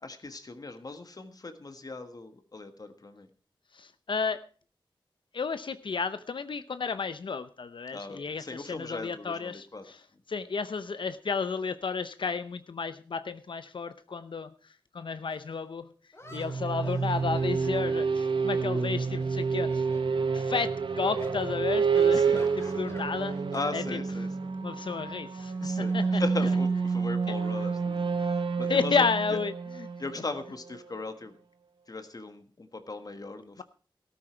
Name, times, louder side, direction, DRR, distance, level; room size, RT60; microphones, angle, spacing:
voice 1, 0.0-3.3 7.9-9.8 22.1-22.5 22.7-22.9 23.5-24.3 25.6-29.1 30.0-31.3 31.9-33.6, left 3 dB, 50° left, 8 dB, 1.5 m, -38 dB
voice 2, 3.7-4.4 5.3-10.0 10.3-14.5 14.9-15.9 16.3-19.9 20.3-23.4 23.7-24.0 24.6-26.2 28.7-29.5 29.8-29.9, left 5 dB, 75° left, 12 dB, 0.7 m, -32 dB
sound 1, 15.3-15.4 16.1-18.8 19.1-20.1 20.5-20.7 21.2-21.4 21.9-23.6 23.9-24.2 25.4-26.8, left 1 dB, 30° left, 2.9 m, -50 dB
sound 2, 16.3-30.9, right 5 dB, 80° right, 1.1 m, -29 dB
13.5 x 13.0 x 4.4 m, 0.39 s
wide cardioid pair, 75°, 8 cm